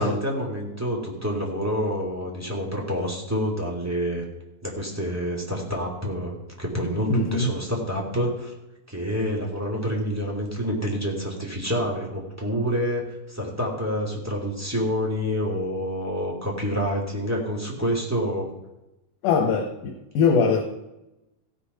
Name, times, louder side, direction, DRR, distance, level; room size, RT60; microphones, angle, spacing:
voice 1, 0.0-4.2 4.6-8.5 8.9-18.5, equal, 5° right, -2 dB, 2.2 m, -28 dB
voice 2, 7.1-7.5 19.2-20.6, left 5 dB, 85° left, 2 dB, 2.8 m, -22 dB
16.0 x 6.9 x 5.7 m, 0.95 s
omnidirectional pair, 3.6 m